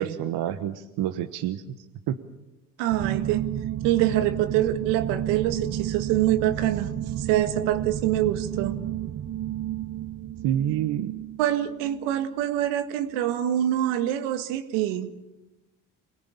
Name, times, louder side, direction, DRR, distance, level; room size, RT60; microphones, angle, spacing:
voice 1, 0.0-1.8 2.1-2.2 10.4-11.1, right 11 dB, 65° right, 9 dB, 1.3 m, -28 dB
voice 2, 2.8-3.5 3.8-6.9 7.2-8.8 11.4-15.1, right 12 dB, 85° right, 9 dB, 1.9 m, -25 dB
sound 1, 2.9-12.4, right 11 dB, 40° right, 0.9 m, -32 dB
25.5 x 18.0 x 8.5 m, 1.0 s
supercardioid pair, 75°, 42 cm